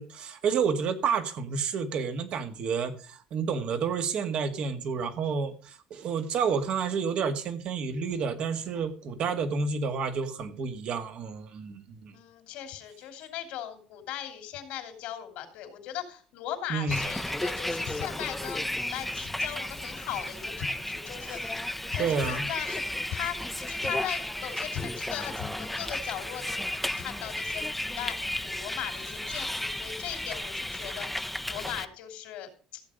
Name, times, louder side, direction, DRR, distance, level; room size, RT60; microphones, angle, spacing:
voice 1, 0.0-12.1 16.7-17.0 21.3-21.4 22.0-22.4, right 5 dB, 60° right, 2.0 m, -30 dB
voice 2, 12.1-32.8, left 11 dB, 75° left, 3.1 m, -38 dB
Bus, 16.9-31.9, left 1 dB, 5° left, 0.9 m, -34 dB
14.5 x 7.8 x 5.2 m
supercardioid pair, 75°, 2 cm